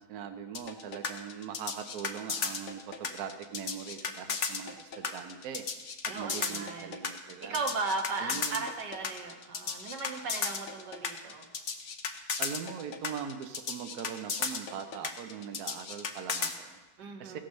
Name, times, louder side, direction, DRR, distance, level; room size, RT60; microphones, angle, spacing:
voice 1, 0.0-5.7 6.0-7.6 8.2-8.7 12.4-16.8 17.2-17.4, right 8 dB, 70° right, 6 dB, 1.2 m, -41 dB
sound 1, 0.5-16.5, left 5 dB, 55° left, 1.1 m, -35 dB
voice 2, 6.1-6.9 7.4-11.5 17.0-17.4, right 3 dB, 90° right, 2 dB, 1.9 m, -36 dB
16.0 x 6.1 x 6.3 m, 1.2 s
omnidirectional pair, 1.8 m